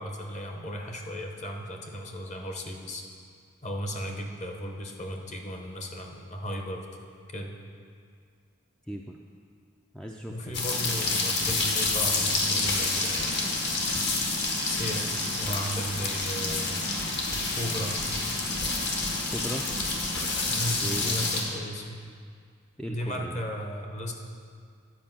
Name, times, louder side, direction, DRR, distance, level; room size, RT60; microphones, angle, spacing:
voice 1, 0.0-3.0 3.6-6.8 7.3-7.5 10.3-13.5 14.6-15.1 15.4-17.0 17.5-17.9 20.5-22.0 22.9-24.1, equal, 35° left, 2 dB, 0.9 m, -35 dB
voice 2, 8.9-9.2 9.9-10.6 19.3-19.6 20.8-21.2 22.8-23.4, equal, 5° left, 0 dB, 0.3 m, -37 dB
sound 1, 10.5-21.4, left 3 dB, 55° left, 1.4 m, -28 dB
10.5 x 5.2 x 7.4 m, 2.2 s
head